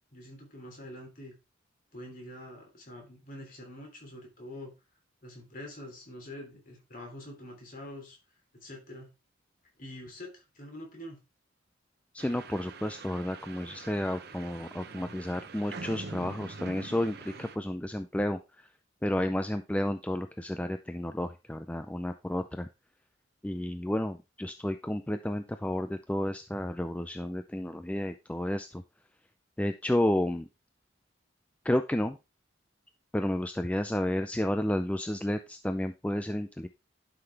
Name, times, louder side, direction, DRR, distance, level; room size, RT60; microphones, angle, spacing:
voice 1, 0.1-1.3 1.9-4.7 5.2-8.2 8.5-9.1 9.8-11.2, left 1 dB, 40° left, 1 dB, 3.2 m, -45 dB
voice 2, 12.1-18.4 19.0-22.7 23.4-28.8 29.6-30.5 31.6-32.2 33.1-36.7, left 1 dB, 5° left, 8 dB, 0.3 m, -31 dB
sound 1, 12.2-17.6, right 4 dB, 50° right, 0.8 m, -44 dB
11.0 x 5.9 x 3.3 m, 0.26 s
head